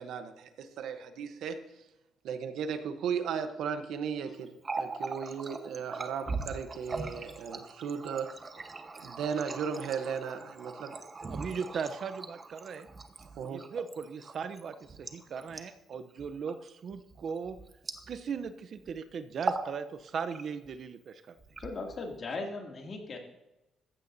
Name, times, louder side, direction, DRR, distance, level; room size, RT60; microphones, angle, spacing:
voice 1, 0.0-1.6 2.2-4.5 4.8-8.3 9.0-10.9 13.4-13.6, right 7 dB, 80° right, 9 dB, 0.9 m, -36 dB
Water tap faucet, 4.5-18.5 18.8-19.0 19.3-19.7 20.1-20.7 21.4-22.2, right 3 dB, 35° right, 1.1 m, -40 dB
voice 2, 11.2-12.9 13.5-17.6 18.1-21.4, right 6 dB, 55° right, 12 dB, 0.7 m, -38 dB
voice 3, 21.6-23.2, left 3 dB, 50° left, 1 dB, 2.5 m, -38 dB
15.0 x 9.6 x 2.7 m, 0.95 s
cardioid pair, 90°, 0 cm